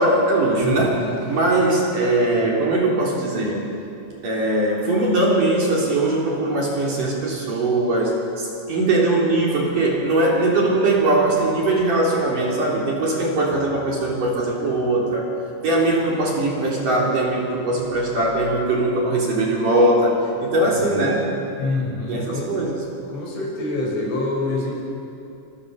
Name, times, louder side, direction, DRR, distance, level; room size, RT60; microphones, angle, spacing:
voice 1, 0.0-1.0 1.3-3.7 4.2-15.3 15.6-21.3 22.1-22.8, right 2 dB, 45° right, -3 dB, 4.9 m, -20 dB
voice 2, 0.6-1.1 7.0-7.1 20.7-21.0 21.5-22.6 23.1-24.7, left 2 dB, 65° left, -1 dB, 7.5 m, -26 dB
28.0 x 25.5 x 7.1 m, 2.8 s
omnidirectional pair, 5.7 m